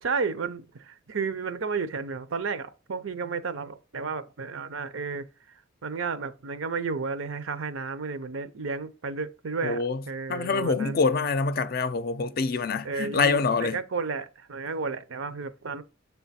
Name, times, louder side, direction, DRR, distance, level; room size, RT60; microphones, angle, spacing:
voice 1, 0.0-11.0 12.8-15.8, right 5 dB, 80° right, 0.6 m, -32 dB
voice 2, 9.6-10.0 10.3-13.8, left 4 dB, 50° left, 0.4 m, -25 dB
7.5 x 3.5 x 4.2 m
head